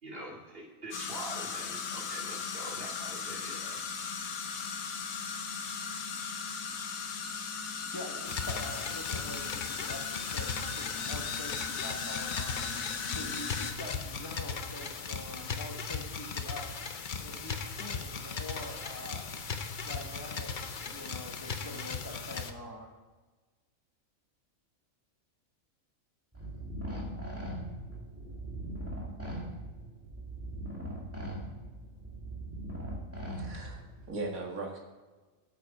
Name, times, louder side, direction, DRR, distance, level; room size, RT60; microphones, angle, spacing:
voice 1, 0.0-3.8, right 1 dB, 45° right, -1 dB, 2.4 m, -45 dB
sound 1, 0.9-13.7, left 6 dB, 85° left, 1.5 m, -37 dB
voice 2, 7.9-12.6 13.1-16.6 17.2-19.2 19.8-22.9, left 1 dB, 15° left, -1 dB, 1.1 m, -45 dB
sound 2, 8.3-22.5, left 5 dB, 45° left, 0.8 m, -38 dB
sound 3, 26.3-34.0, right 1 dB, 10° right, 2.0 m, -40 dB
voice 3, 33.4-34.8, right 3 dB, 80° right, 1 dB, 2.3 m, -38 dB
8.9 x 8.4 x 6.0 m, 1.3 s
omnidirectional pair, 1.4 m